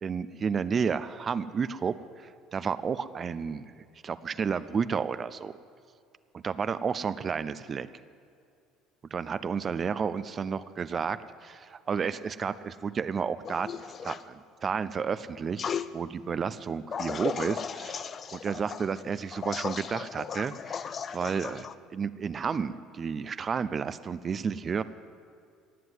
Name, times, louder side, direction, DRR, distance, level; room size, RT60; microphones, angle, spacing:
voice 1, 0.0-5.5 6.3-7.9 9.1-13.7 14.0-15.6 15.9-20.5 21.1-24.8, right 6 dB, 35° right, 14 dB, 0.5 m, -31 dB
sound 1, 13.4-14.2 15.6-15.9 16.9-21.7, left 7 dB, 40° left, 0.5 m, -36 dB
18.5 x 7.6 x 8.1 m, 2.4 s
supercardioid pair, 100°, 0 cm